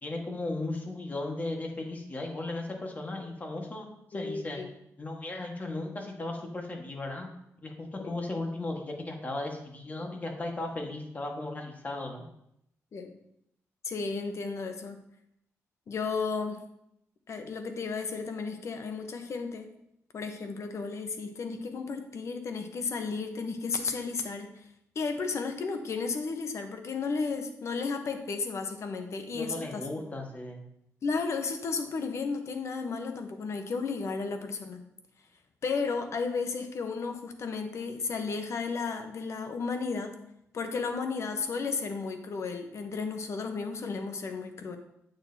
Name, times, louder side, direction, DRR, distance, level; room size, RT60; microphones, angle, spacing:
voice 1, 0.0-4.6 5.0-7.3 7.6-12.3 29.3-30.7, left 2 dB, 30° left, 2 dB, 1.6 m, -36 dB
voice 2, 4.1-4.7 8.0-8.1 12.9-13.1 13.8-15.0 15.9-16.6 17.3-19.7 20.1-24.6 24.9-29.8 31.0-34.8 35.6-40.1 40.5-44.8, left 4 dB, 60° left, 6 dB, 1.0 m, -33 dB
8.9 x 6.5 x 2.8 m, 0.77 s
cardioid pair, 90°, 6 cm